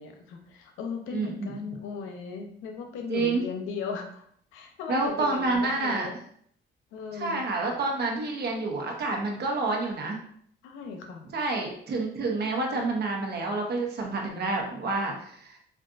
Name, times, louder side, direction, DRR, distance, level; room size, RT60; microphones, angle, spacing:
voice 1, 0.0-4.2 4.5-6.1 6.9-7.5 10.6-11.3, left 5 dB, 85° left, 4 dB, 0.6 m, -37 dB
voice 2, 1.1-1.5 3.1-3.4 4.9-6.1 7.1-10.2 11.3-15.6, right 3 dB, 55° right, 1 dB, 0.8 m, -28 dB
3.8 x 2.4 x 2.4 m, 0.64 s
cardioid pair, 90°, 20 cm